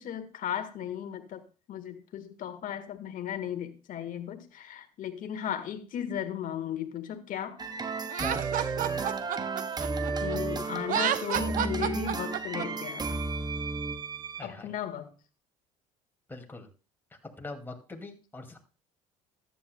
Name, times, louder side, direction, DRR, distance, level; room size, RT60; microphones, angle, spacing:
voice 1, 0.0-1.4 1.7-7.6 9.7-13.2 14.4-15.1, left 10 dB, 55° left, 8 dB, 1.6 m, -36 dB
sound 1, 7.6-14.5, right 4 dB, 25° right, 0.9 m, -33 dB
Laughter, 8.1-10.4 10.8-12.7, right 10 dB, 55° right, 0.7 m, -30 dB
voice 2, 14.4-14.7 16.3-16.7 17.4-18.6, left 2 dB, 10° left, 4 dB, 2.2 m, -41 dB
14.0 x 10.0 x 2.2 m, 0.34 s
hypercardioid pair, 70°, 17 cm